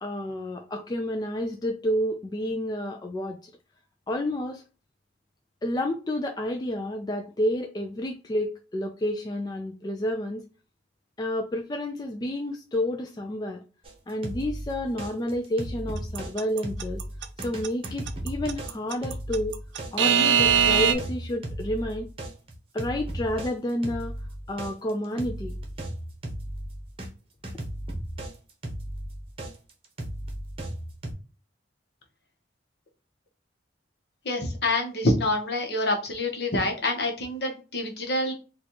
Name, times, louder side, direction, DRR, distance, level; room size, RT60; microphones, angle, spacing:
voice 1, 0.0-3.5 4.1-4.6 5.6-10.4 11.2-13.6 14.1-17.0 17.4-19.5 19.9-22.1 22.7-24.1 24.5-25.5, left 1 dB, 20° left, 3 dB, 0.3 m, -30 dB
sound 1, 13.8-16.3 16.6-27.1 27.4-31.1, right 1 dB, 30° right, 0.8 m, -35 dB
Alarm / Clock, 16.1-20.9, right 8 dB, 80° right, 0.5 m, -21 dB
voice 2, 34.2-38.3, left 2 dB, 60° left, 2 dB, 1.0 m, -26 dB
4.0 x 2.4 x 2.9 m, 0.35 s
head